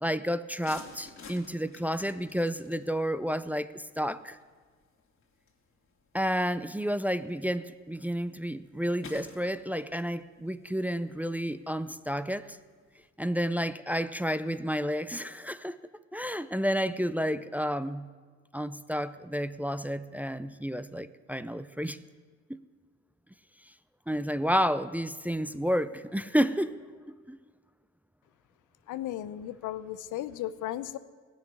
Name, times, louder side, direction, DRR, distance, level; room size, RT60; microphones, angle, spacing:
voice 1, 0.0-4.4 6.1-12.6 13.2-15.8 16.1-18.1 18.5-22.0 22.5-22.6 24.1-26.8 27.3-27.4, equal, 5° right, 12 dB, 0.4 m, -30 dB
sound 1, 0.6-13.1, left 4 dB, 45° left, 2.6 m, -54 dB
voice 2, 28.9-31.0, left 13 dB, 85° left, 15 dB, 0.7 m, -35 dB
16.5 x 6.5 x 9.7 m, 1.5 s
cardioid pair, 90°, 30 cm